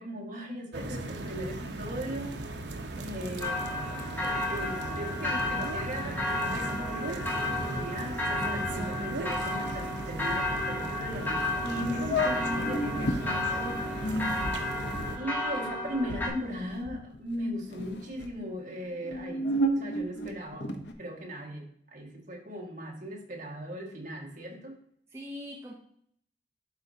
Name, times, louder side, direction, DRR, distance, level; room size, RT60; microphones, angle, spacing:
voice 1, 0.0-2.3 3.0-3.7 4.2-14.1 15.2-20.7 21.0-24.8, equal, 45° right, 0 dB, 1.7 m, -38 dB
sound 1, 0.7-15.2, right 2 dB, 75° right, 0.8 m, -37 dB
sound 2, 3.4-16.3, left 2 dB, 10° left, 1.2 m, -33 dB
sound 3, 11.5-11.6 12.1-13.2 13.9-17.3 17.6-18.3 18.9-20.9, equal, 90° left, 0.9 m, -32 dB
voice 2, 25.1-25.7, left 1 dB, 15° right, -1 dB, 0.8 m, -43 dB
11.0 x 4.5 x 2.8 m, 0.66 s
head